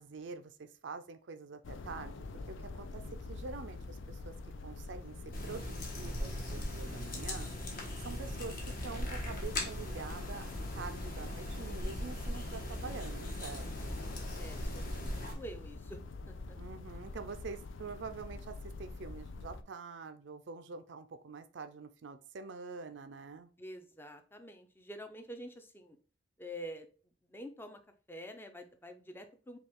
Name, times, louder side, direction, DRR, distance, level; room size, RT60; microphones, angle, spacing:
voice 1, 0.0-3.0 3.3-4.3 4.6-5.2 5.4-7.5 8.0-10.5 10.7-14.0 16.5-23.5, right 4 dB, 65° right, 8 dB, 0.4 m, -46 dB
sound 1, 1.6-19.6, left 3 dB, 75° left, 0.5 m, -45 dB
sound 2, 5.3-15.3, left 1 dB, 45° left, 1.1 m, -39 dB
voice 2, 13.7-16.0 16.3-16.6 23.6-26.0 26.4-26.9 27.3-27.8 28.1-29.6, equal, 10° left, 6 dB, 0.5 m, -47 dB
5.4 x 2.3 x 3.5 m, 0.38 s
head